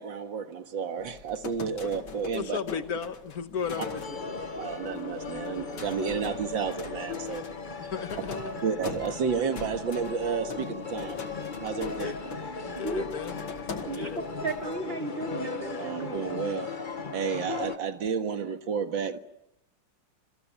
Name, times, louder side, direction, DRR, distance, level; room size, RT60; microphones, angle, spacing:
voice 1, 0.0-2.6 4.6-7.5 7.8-7.9 8.6-11.2 11.6-12.1 15.8-16.7 17.1-19.2, right 6 dB, 70° right, 2.4 m, -31 dB
sound 1, 1.0-14.7, left 4 dB, 80° left, 2.9 m, -43 dB
voice 2, 2.3-4.2 7.8-8.5 11.8-12.2 12.6-13.3 13.8-14.2, left 7 dB, 50° left, 1.7 m, -35 dB
sound 2, 3.8-17.8, left 4 dB, 30° left, 1.0 m, -37 dB
voice 3, 8.2-8.6 12.7-13.1 13.9-16.3, right 3 dB, 30° right, 3.1 m, -35 dB
27.0 x 25.5 x 7.1 m
omnidirectional pair, 2.2 m